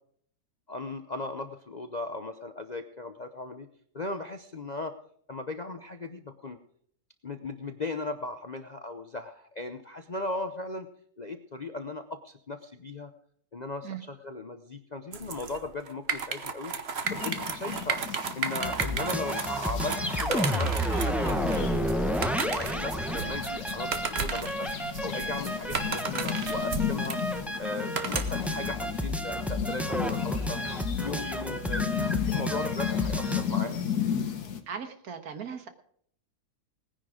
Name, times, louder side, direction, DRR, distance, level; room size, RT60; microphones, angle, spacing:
voice 1, 0.7-3.7 3.9-5.0 5.3-6.6 7.2-10.9 11.2-13.1 13.5-16.7 17.1-18.0 18.3-20.7 21.0-24.7 25.0-27.2 27.6-30.6 31.0-31.9 32.2-33.8, left 2 dB, 40° left, 7 dB, 0.6 m, -37 dB
sound 1, 15.1-28.6, right 5 dB, 45° right, 1.2 m, -34 dB
sound 2, 17.0-34.6, left 8 dB, 75° left, 1.8 m, -34 dB
sound 3, 18.6-33.4, equal, ahead, 0.7 m, -31 dB
voice 2, 34.7-35.7, right 7 dB, 65° right, 8 dB, 1.7 m, -38 dB
18.5 x 10.0 x 4.9 m, 0.64 s
omnidirectional pair, 1.7 m